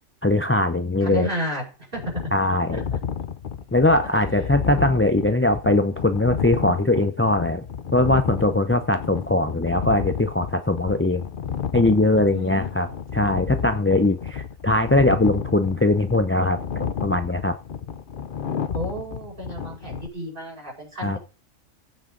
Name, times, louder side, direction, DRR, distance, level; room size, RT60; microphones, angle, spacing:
voice 1, 0.2-1.3 2.3-2.8 3.7-7.6 7.9-11.2 11.7-12.9 13.1-17.5 21.0-21.2, left 2 dB, 20° left, 0.4 m, -21 dB
voice 2, 1.0-1.6 1.9-2.1 2.7-2.8 4.2-4.9 12.3-12.9 18.7-21.2, equal, 45° right, 5.6 m, -32 dB
sound 1, 1.9-20.1, left 7 dB, 50° left, 0.9 m, -31 dB
16.5 x 8.6 x 3.9 m
omnidirectional pair, 1.3 m